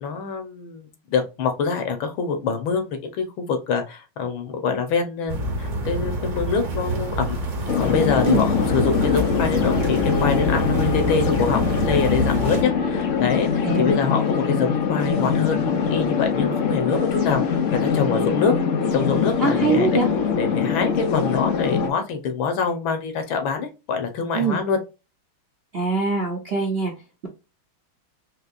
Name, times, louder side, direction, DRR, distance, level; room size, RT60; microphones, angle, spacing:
voice 1, 0.0-7.4 7.8-18.5 18.9-20.0 20.4-24.8, left 5 dB, 75° left, 6 dB, 1.7 m, -25 dB
sound 1, 5.3-12.6, right 1 dB, 45° right, 1.1 m, -27 dB
sound 2, 6.7-13.9, right 1 dB, 5° left, 0.6 m, -43 dB
sound 3, 7.7-21.9, left 6 dB, 90° left, 0.6 m, -23 dB
voice 2, 13.6-13.9 19.4-20.1 24.3-24.6 25.7-26.9, right 3 dB, 65° right, 0 dB, 0.5 m, -22 dB
4.6 x 2.9 x 2.4 m, 0.29 s
omnidirectional pair, 2.2 m